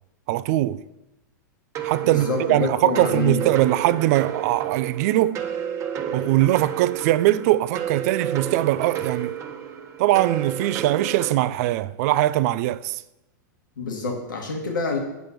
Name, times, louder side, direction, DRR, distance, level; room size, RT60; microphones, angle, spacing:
voice 1, 0.3-0.8 1.8-5.4 6.1-9.4 10.0-13.0, right 16 dB, 55° right, 0.5 m, -21 dB
sound 1, 1.7-11.4, right 8 dB, 30° right, 1.2 m, -31 dB
voice 2, 2.0-3.4 13.8-15.0, left 4 dB, 90° left, 2.1 m, -27 dB
9.4 x 5.8 x 6.8 m
hypercardioid pair, 125°, 10 cm